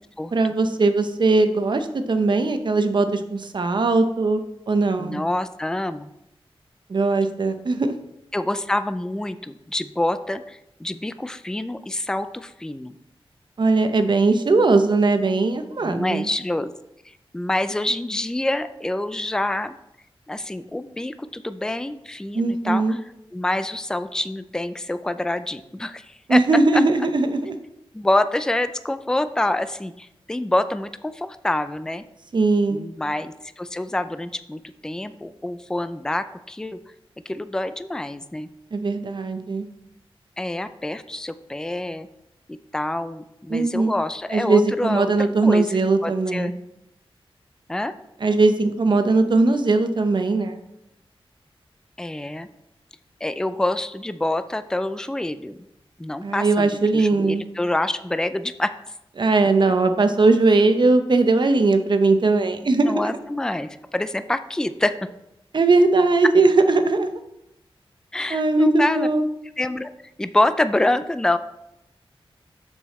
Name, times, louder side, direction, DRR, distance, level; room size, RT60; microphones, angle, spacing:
voice 1, 0.3-4.4 4.7-5.2 6.9-8.0 13.6-16.3 22.3-22.9 26.3-27.6 32.3-32.8 38.7-39.7 43.5-43.9 44.3-46.5 48.2-50.6 56.2-57.4 59.2-63.2 65.5-67.1 68.3-69.2, right 3 dB, 50° right, 8 dB, 0.8 m, -19 dB
voice 2, 5.0-6.1 8.3-13.0 15.8-16.7 17.3-19.8 20.3-23.0 23.3-26.4 26.7-26.8 27.9-32.0 32.7-36.8 37.3-38.5 40.4-42.1 42.7-45.7 46.0-46.5 47.7-47.9 52.0-52.5 53.2-55.6 56.0-58.7 62.9-65.0 68.1-69.1 69.6-69.9 70.2-71.4, left 1 dB, 5° left, 11 dB, 0.4 m, -26 dB
7.1 x 6.9 x 4.2 m, 0.85 s
wide cardioid pair, 105°, 10 cm